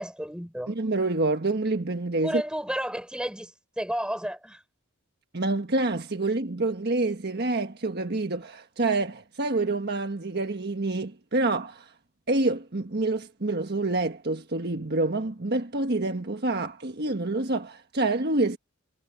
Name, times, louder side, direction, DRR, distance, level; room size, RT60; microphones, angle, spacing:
voice 1, 0.0-0.7 2.2-4.6, equal, 5° right, 5.5 m, -32 dB
voice 2, 0.7-2.4 5.3-11.9 12.3-18.6, right 2 dB, 50° right, 1.5 m, -27 dB
head